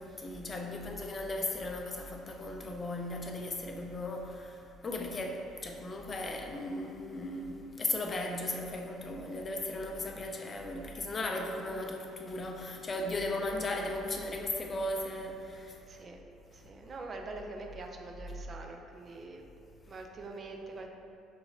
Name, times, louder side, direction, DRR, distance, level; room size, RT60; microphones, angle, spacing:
voice 1, 0.0-15.8, left 2 dB, 30° left, 2 dB, 0.4 m, -36 dB
voice 2, 15.9-16.2 16.5-19.5 19.9-20.9, right 3 dB, 40° right, 3 dB, 0.4 m, -44 dB
5.3 x 2.9 x 2.4 m, 2.7 s
figure-of-eight pair, 50°, 0 cm